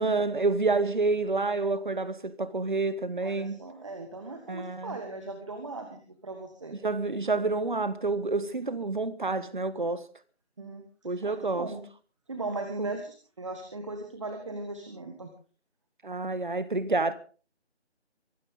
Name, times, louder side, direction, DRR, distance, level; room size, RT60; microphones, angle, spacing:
voice 1, 0.0-3.6 4.5-5.0 6.8-10.1 11.0-11.7 12.8-13.0 16.0-17.1, right 3 dB, 45° right, 1.4 m, -28 dB
voice 2, 3.2-6.8 10.6-10.8 11.2-11.8 12.3-15.3, right 2 dB, 25° right, 1.7 m, -38 dB
24.0 x 13.5 x 3.8 m
figure-of-eight pair, 165°, 34 cm